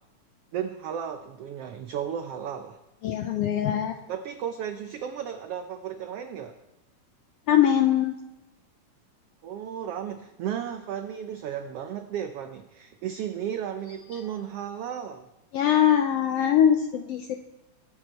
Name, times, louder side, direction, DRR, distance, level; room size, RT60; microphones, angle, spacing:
voice 1, 0.5-2.8 3.7-3.8 4.1-6.6 9.4-15.3, right 9 dB, 85° right, 8 dB, 1.3 m, -34 dB
voice 2, 3.0-3.9 7.5-8.2 15.5-17.4, left 10 dB, 80° left, 6 dB, 1.4 m, -22 dB
21.5 x 7.9 x 4.4 m, 0.99 s
omnidirectional pair, 3.5 m